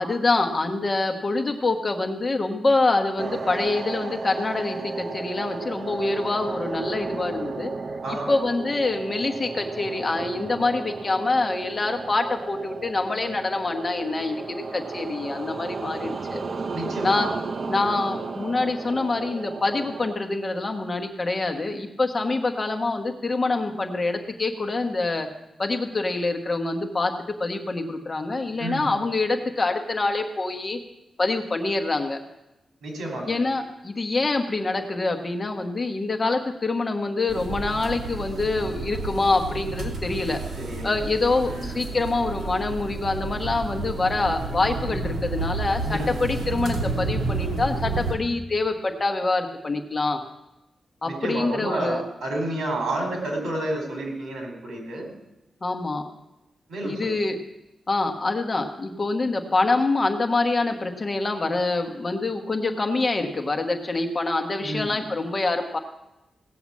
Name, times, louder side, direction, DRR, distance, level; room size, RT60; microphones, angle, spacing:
voice 1, 0.0-7.7 8.1-16.4 17.0-17.3 17.7-25.3 25.6-27.1 27.4-30.8 31.2-32.2 33.3-40.4 40.8-50.2 51.0-52.0 55.6-56.0 56.8-57.4 57.9-65.8, left 3 dB, 25° left, 4 dB, 1.2 m, -25 dB
sound 1, 3.2-20.1, right 4 dB, 40° right, 0.6 m, -34 dB
voice 2, 8.0-8.4 16.7-17.3 28.6-28.9 32.8-33.4 40.6-41.0 41.4-41.8 45.8-46.2 51.0-55.1 56.7-57.2 64.6-65.0, right 1 dB, 80° right, 2 dB, 4.3 m, -30 dB
sound 2, 37.3-48.1, right 3 dB, 60° right, 2.6 m, -31 dB
17.0 x 6.9 x 8.4 m, 0.94 s
wide cardioid pair, 165°, 0 cm